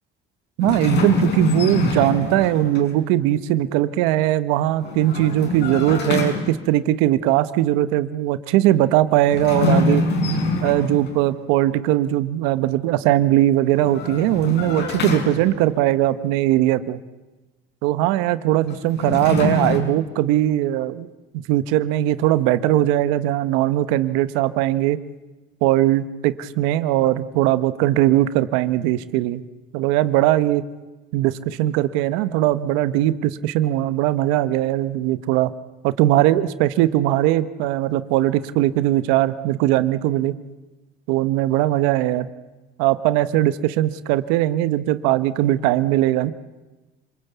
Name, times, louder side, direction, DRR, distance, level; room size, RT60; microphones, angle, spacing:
sound 1, 0.6-2.9 4.8-6.7 9.2-11.3 13.7-15.8 18.7-19.8, left 3 dB, 55° left, 5.7 m, -24 dB
voice 1, 0.6-10.1 10.6-17.0 17.8-21.1 21.3-25.0 25.6-29.4 29.7-30.6 31.1-35.5 35.8-40.3 41.1-42.3 42.8-46.3, right 14 dB, 90° right, 13 dB, 1.1 m, -20 dB
27.0 x 20.5 x 8.2 m, 1.1 s
cardioid pair, 105°, 21 cm